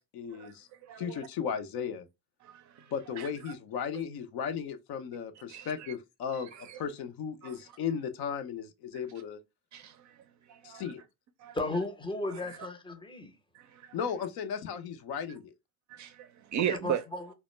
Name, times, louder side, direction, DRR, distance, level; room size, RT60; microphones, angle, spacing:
voice 1, 0.0-0.7 1.0-2.1 2.9-9.4 10.6-11.0 13.9-15.5, left 7 dB, 65° left, 0.5 m, -36 dB
voice 2, 0.8-1.3 2.4-3.5 5.5-5.9 6.5-6.8 7.4-7.6 9.7-10.2 10.5-10.8 11.4-11.6 13.5-14.0 15.9-17.0, right 10 dB, 45° right, 0.4 m, -37 dB
voice 3, 11.5-13.3 16.6-17.3, left 2 dB, 10° left, 0.6 m, -35 dB
2.1 x 2.0 x 3.1 m
supercardioid pair, 70°, 41 cm